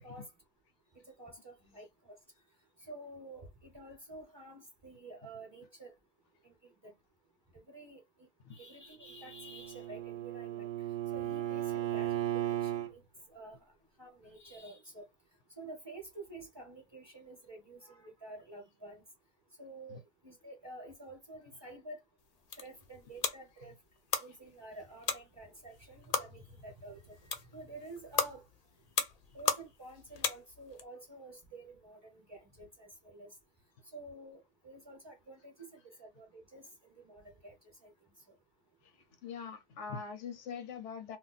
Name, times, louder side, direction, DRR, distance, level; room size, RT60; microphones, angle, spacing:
voice 1, 0.9-2.2 2.9-5.9 6.4-6.9 7.5-10.7 11.1-13.0 13.3-13.6 14.0-15.0 15.6-19.0 19.6-22.0 22.6-23.8 24.2-27.2 27.5-28.5 29.3-33.3 33.9-37.5 37.8-37.9 38.3-38.4, right 2 dB, 25° right, 0.8 m, -50 dB
Bowed string instrument, 9.1-12.9, right 13 dB, 65° right, 0.7 m, -36 dB
sound 1, 22.2-30.8, left 5 dB, 50° left, 0.5 m, -38 dB
voice 2, 38.8-41.2, left 6 dB, 80° left, 1.0 m, -43 dB
2.5 x 2.1 x 3.9 m
omnidirectional pair, 1.2 m